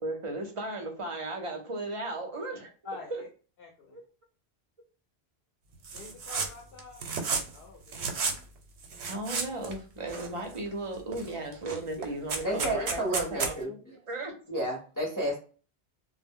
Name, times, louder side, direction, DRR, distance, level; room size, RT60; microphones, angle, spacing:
voice 1, 0.0-2.7 3.1-3.2 3.9-4.0 9.0-13.8 14.1-14.3, right 2 dB, 40° right, 3 dB, 0.5 m, -36 dB
voice 2, 2.8-3.3 3.6-4.0 5.9-7.0 7.5-8.1, left 4 dB, 70° left, 1 dB, 0.7 m, -46 dB
sound 1, 5.8-6.5 6.8-7.6 7.9-8.4 8.8-9.8 10.1-10.7 11.1-11.3 11.5-13.5, right 5 dB, 85° right, 0.8 m, -32 dB
voice 3, 12.4-13.7 14.5-15.4, right 1 dB, 25° left, -2 dB, 0.5 m, -31 dB
2.0 x 2.0 x 3.5 m, 0.38 s
omnidirectional pair, 1.1 m